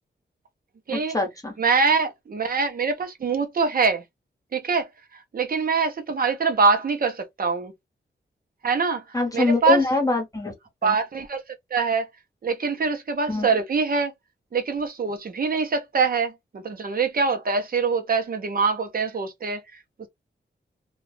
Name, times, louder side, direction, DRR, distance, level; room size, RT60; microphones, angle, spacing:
voice 1, 0.9-1.6 9.1-10.5 10.8-11.0 13.3-13.5, left 3 dB, 20° left, 1.1 m, -24 dB
voice 2, 1.6-4.0 4.5-4.9 5.3-7.7 8.6-9.0 9.3-9.8 10.8-11.4 11.7-12.1 12.4-14.1 14.5-19.6, right 4 dB, 50° right, 0.8 m, -24 dB
2.4 x 2.3 x 3.3 m
wide cardioid pair, 130°, 19 cm